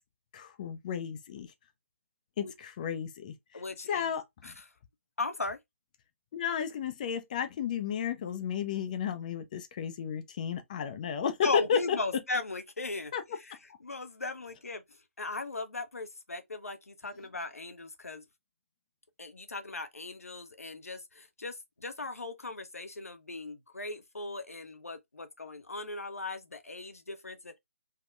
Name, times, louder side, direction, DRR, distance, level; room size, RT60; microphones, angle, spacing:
voice 1, 0.3-1.5 2.4-3.6 3.9-4.5 6.3-11.8 13.1-13.2, left 7 dB, 35° left, 0.4 m, -33 dB
voice 2, 3.5-4.1 4.4-4.6 5.2-5.6 11.4-18.2 19.2-27.6, left 3 dB, 85° left, 0.6 m, -38 dB
3.5 x 2.1 x 2.4 m
figure-of-eight pair, 140°, 8 cm